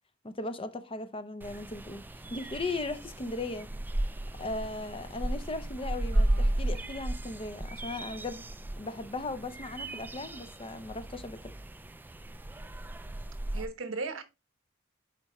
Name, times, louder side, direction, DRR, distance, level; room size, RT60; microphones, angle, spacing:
voice 1, 0.2-2.0 2.3-3.7 4.4-8.4 8.8-11.4, left 2 dB, 30° left, 0.7 m, -37 dB
sound 1, 1.4-13.7, right 1 dB, 10° right, 0.3 m, -34 dB
voice 2, 6.1-6.6 13.5-14.2, right 3 dB, 80° right, 1.1 m, -37 dB
10.0 x 4.4 x 3.1 m
head